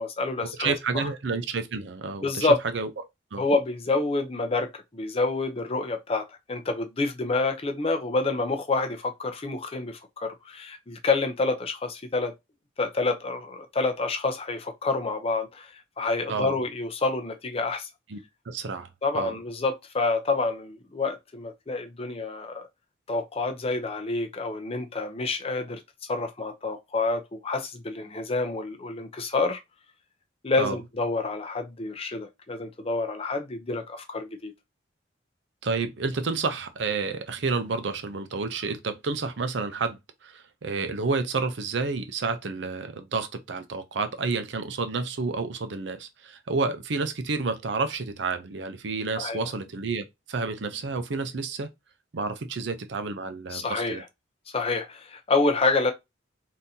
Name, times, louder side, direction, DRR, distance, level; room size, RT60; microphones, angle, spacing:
voice 1, 0.0-1.1 2.2-2.6 3.4-12.3 12.8-15.7 16.0-17.9 19.0-22.7 23.1-25.8 26.1-29.6 30.4-34.5 49.2-49.4 53.5-54.0 54.5-55.9, left 3 dB, 30° left, 0.5 m, -28 dB
voice 2, 0.6-2.5 2.7-2.9 3.3-3.5 16.3-16.5 18.1-18.2 18.5-18.9 19.1-19.3 30.6-30.8 35.6-51.7 52.1-54.0, right 4 dB, 65° right, 0.5 m, -30 dB
3.6 x 2.7 x 2.7 m
head